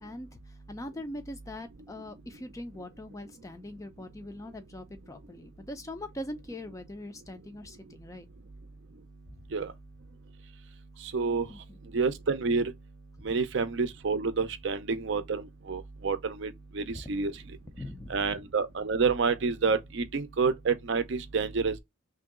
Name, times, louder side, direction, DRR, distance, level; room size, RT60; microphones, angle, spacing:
voice 1, 0.0-0.4 0.7-8.3 11.5-11.8 13.2-13.3 17.2-17.3 17.8-18.3, left 1 dB, 15° left, 0.4 m, -42 dB
voice 2, 11.1-11.5 11.9-12.7 13.2-17.3 18.1-21.8, right 4 dB, 55° right, 0.5 m, -28 dB
3.0 x 2.6 x 3.6 m
head